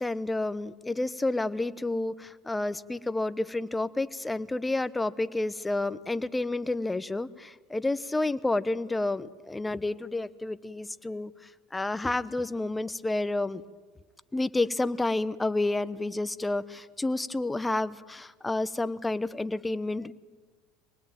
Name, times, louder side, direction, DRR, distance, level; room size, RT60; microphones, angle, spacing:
voice 1, 0.0-11.3 11.7-13.6 14.3-20.1, left 2 dB, 10° left, 15 dB, 1.0 m, -30 dB
25.0 x 19.5 x 9.2 m, 1.5 s
supercardioid pair, 95°, 0 cm